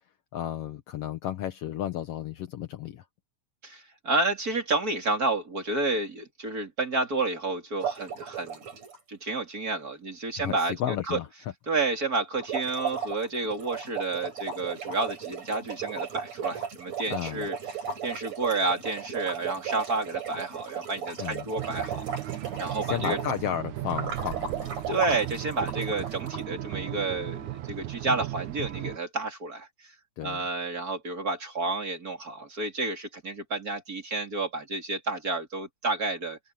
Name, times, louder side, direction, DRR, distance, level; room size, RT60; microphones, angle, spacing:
voice 1, 0.3-3.0 10.4-11.3 17.1-17.5 21.2-21.5 22.8-24.7 30.2-30.4, left 11 dB, 70° left, 1.5 m, -33 dB
voice 2, 3.6-8.6 9.1-10.7 11.1-11.2 11.7-17.6 18.0-22.1 22.6-23.2 24.9-29.9 30.2-36.4, right 3 dB, 25° right, 3.5 m, -30 dB
sound 1, 7.8-9.0 12.3-23.4 23.9-26.4, right 6 dB, 50° right, 6.3 m, -36 dB
sound 2, 21.6-29.0, right 14 dB, 70° right, 2.2 m, -36 dB
omnidirectional pair, 4.0 m